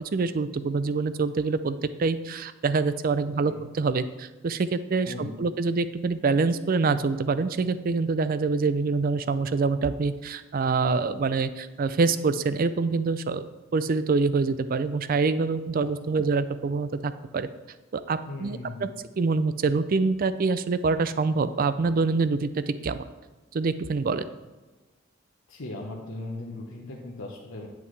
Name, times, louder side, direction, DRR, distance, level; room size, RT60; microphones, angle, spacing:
voice 1, 0.1-13.4 13.7-17.5 17.9-18.9 19.2-23.1 23.5-24.2, right 4 dB, 45° right, 13 dB, 0.4 m, -25 dB
voice 2, 5.0-5.4 15.8-16.3 18.3-19.0 25.5-27.7, left 2 dB, 80° left, -3 dB, 1.0 m, -38 dB
9.2 x 8.2 x 3.3 m, 1.2 s
head